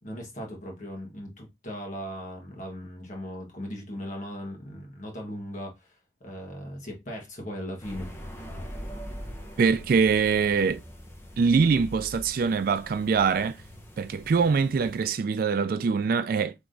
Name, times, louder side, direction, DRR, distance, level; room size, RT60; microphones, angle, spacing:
voice 1, 0.0-8.1, equal, 40° left, 1.5 m, -38 dB
sound 1, 7.8-15.1, equal, 15° left, 0.8 m, -42 dB
voice 2, 9.6-10.8 11.4-13.6 14.0-16.5, right 5 dB, 50° right, 0.3 m, -23 dB
3.5 x 3.0 x 3.7 m
head